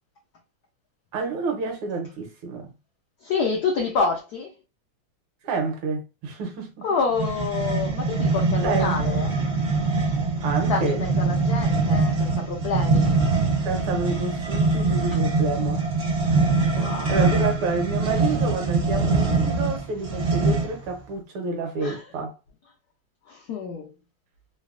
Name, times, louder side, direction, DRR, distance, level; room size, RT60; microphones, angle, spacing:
voice 1, 1.1-2.7 5.4-6.9 8.6-9.4 10.4-11.0 13.7-15.8 17.1-22.3, right 4 dB, 80° right, 1.8 m, -29 dB
voice 2, 3.2-4.5 6.8-9.3 10.7-13.1 16.7-17.3 21.8-22.0 23.3-23.9, left 4 dB, 80° left, 0.8 m, -28 dB
sound 1, 7.1-20.9, right 3 dB, 50° right, 0.6 m, -23 dB
3.9 x 2.0 x 2.4 m
omnidirectional pair, 2.3 m